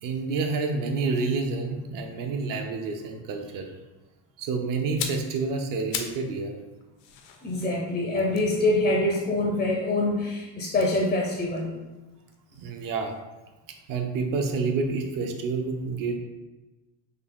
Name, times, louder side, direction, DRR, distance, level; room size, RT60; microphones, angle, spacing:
voice 1, 0.0-3.7 4.4-6.6 12.6-13.1 13.9-16.2, right 4 dB, 50° right, 4 dB, 0.7 m, -28 dB
sound 1, 4.8-6.3 6.6-9.9 10.7-12.7 13.0-13.2, left 7 dB, 90° left, 0.7 m, -39 dB
voice 2, 7.4-11.8, left 2 dB, 20° left, -1 dB, 0.5 m, -25 dB
3.9 x 2.7 x 3.5 m, 1.1 s
cardioid pair, 140°, 43 cm